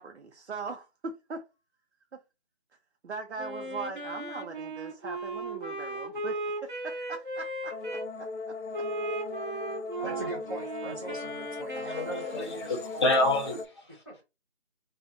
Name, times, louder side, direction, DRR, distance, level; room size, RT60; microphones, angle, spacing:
voice 1, 0.0-1.4 2.1-2.2 3.0-8.5 10.0-10.4 10.8-11.1, right 4 dB, 85° right, 0.6 m, -40 dB
Wind instrument woodwind instrument, 3.4-8.1 8.7-12.7, right 2 dB, 50° right, 1.1 m, -37 dB
sound 1, 7.7-13.7, left 4 dB, 85° left, 0.6 m, -39 dB
voice 2, 10.0-13.2 14.1-14.2, right 1 dB, 20° right, 0.6 m, -41 dB
voice 3, 11.7-14.2, left 2 dB, 25° left, 0.7 m, -29 dB
3.3 x 2.2 x 2.6 m
figure-of-eight pair, 160°, 33 cm